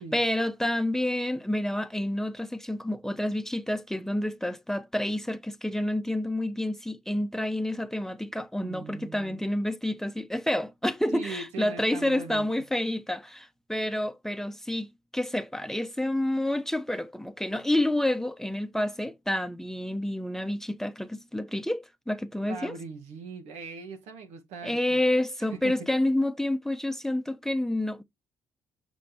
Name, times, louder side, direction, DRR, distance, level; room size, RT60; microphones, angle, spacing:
voice 1, 0.0-14.9 15.1-22.7 24.6-28.0, left 1 dB, 5° left, 0.8 m, -29 dB
voice 2, 8.6-9.4 11.1-12.5 22.4-25.0 25.4-25.9, right 4 dB, 85° right, 1.4 m, -40 dB
7.5 x 6.1 x 2.9 m
supercardioid pair, 75°, 11 cm